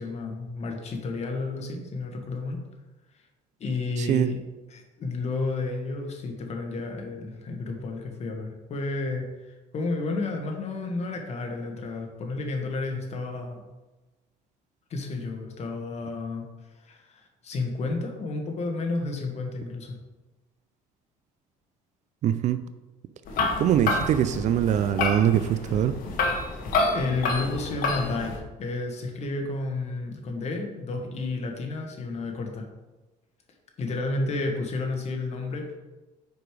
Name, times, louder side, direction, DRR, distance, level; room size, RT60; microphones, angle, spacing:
voice 1, 0.0-2.6 3.1-3.2 3.6-4.4 4.7-13.7 14.9-16.5 16.8-20.0 26.5-26.6 26.9-32.7 33.8-35.8, left 3 dB, 45° left, 3 dB, 1.4 m, -31 dB
voice 2, 4.0-4.3 22.2-22.6 23.6-25.9, right 10 dB, 50° right, 12 dB, 0.4 m, -23 dB
sound 1, 23.3-28.4, left 3 dB, 60° left, 1.3 m, -28 dB
5.1 x 4.9 x 4.8 m, 1.1 s
cardioid pair, 110°, 16 cm